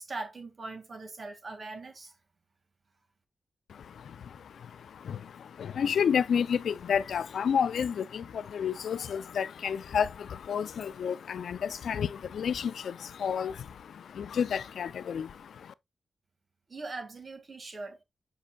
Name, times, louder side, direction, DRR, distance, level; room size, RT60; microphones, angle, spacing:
voice 1, 0.0-2.1 16.7-18.0, right 3 dB, 40° right, 2.0 m, -41 dB
voice 2, 3.7-15.7, left 7 dB, 85° left, 0.4 m, -31 dB
7.6 x 5.5 x 2.3 m
wide cardioid pair, 140°, 0 cm